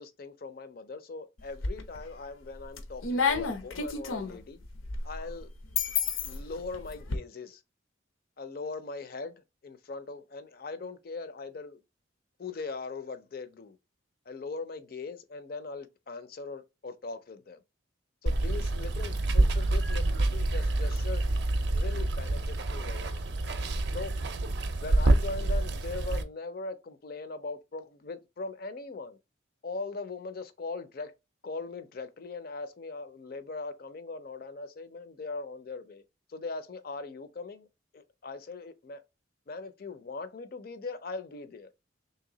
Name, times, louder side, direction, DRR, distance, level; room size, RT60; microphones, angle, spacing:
voice 1, 0.0-4.6 5.0-5.5 6.2-7.6 8.4-9.3 9.6-11.8 12.4-13.8 14.3-17.6 18.2-23.3 23.9-24.2 24.8-29.2 29.6-31.1 31.4-36.0 36.3-37.7 37.9-39.0 39.5-41.7, left 3 dB, 50° left, 0.4 m, -40 dB
sound 1, 1.4-2.1 2.5-7.2, left 5 dB, 85° left, 0.7 m, -31 dB
Water, 18.3-26.2, right 2 dB, 55° right, 0.5 m, -27 dB
3.3 x 2.8 x 3.8 m
head